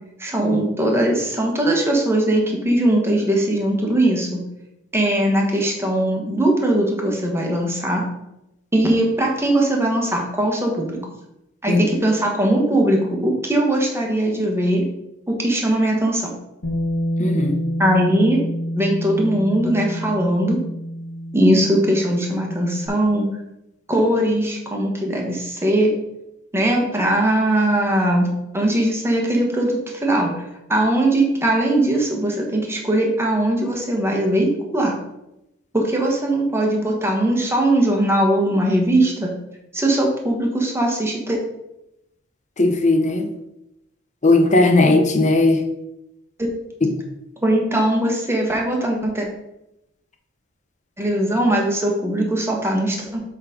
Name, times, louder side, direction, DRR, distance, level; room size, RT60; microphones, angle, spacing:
voice 1, 0.2-4.4 4.9-8.0 8.7-11.0 11.6-14.8 15.3-16.3 17.8-18.4 18.7-20.6 21.3-23.3 23.9-25.9 26.5-30.4 30.7-35.0 35.7-39.3 39.7-41.4 47.4-49.3 51.0-53.2, right 1 dB, 10° right, 0 dB, 1.4 m, -20 dB
Bass guitar, 16.6-22.9, equal, 85° left, 1.7 m, -27 dB
voice 2, 17.2-17.5 42.6-43.3 44.2-45.6 46.8-46.9, left 2 dB, 35° left, 5 dB, 0.8 m, -17 dB
7.3 x 3.9 x 5.1 m, 0.86 s
head